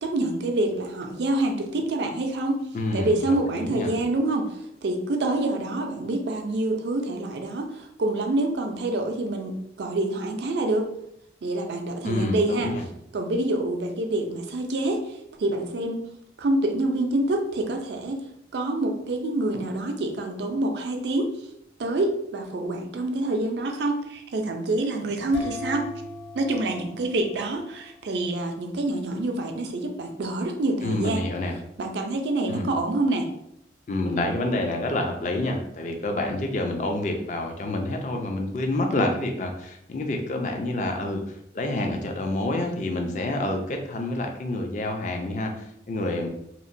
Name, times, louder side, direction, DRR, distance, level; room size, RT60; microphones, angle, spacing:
voice 1, 0.0-2.6 2.9-4.5 4.8-10.9 11.4-12.7 13.1-16.0 16.4-18.2 18.5-21.3 21.8-25.9 26.3-31.3 31.8-33.3, right 2 dB, 75° right, 4 dB, 0.4 m, -26 dB
voice 2, 2.7-3.9 12.0-12.8 30.8-31.6 32.5-32.7 33.9-46.3, left 2 dB, 45° left, 3 dB, 0.4 m, -28 dB
sound 1, 25.3-28.1, left 2 dB, 70° left, 0.7 m, -39 dB
2.9 x 2.1 x 2.5 m, 0.77 s
head